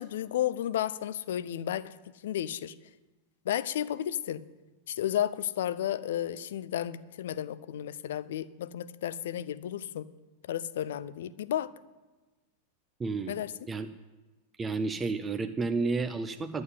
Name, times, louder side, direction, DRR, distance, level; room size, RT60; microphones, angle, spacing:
voice 1, 0.0-1.9 2.2-2.7 3.5-4.4 4.9-10.1 10.5-11.7 13.3-13.5, left 11 dB, 60° left, 17 dB, 0.5 m, -32 dB
voice 2, 13.0-13.3 13.7-13.9 14.6-16.6, right 4 dB, 15° right, 9 dB, 0.6 m, -31 dB
11.0 x 7.7 x 9.3 m, 1.2 s
figure-of-eight pair, 90°, 0 cm